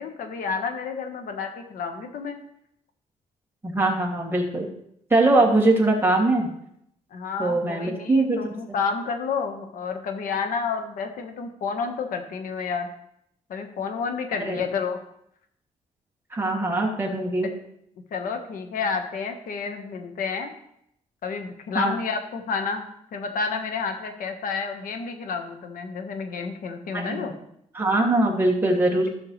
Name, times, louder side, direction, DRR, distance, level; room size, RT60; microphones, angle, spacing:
voice 1, 0.0-2.4 5.4-5.5 7.1-12.9 13.5-15.0 18.1-20.5 21.2-22.9 23.1-27.3 28.9-29.1, left 5 dB, 85° left, 6 dB, 1.4 m, -30 dB
voice 2, 3.6-4.7 5.1-6.5 7.4-8.4 14.4-14.6 16.3-17.5 21.7-21.9 26.9-27.4 27.7-29.1, right 2 dB, 15° right, -2 dB, 2.4 m, -22 dB
15.5 x 6.5 x 3.3 m, 0.75 s
cardioid pair, 125°, 14 cm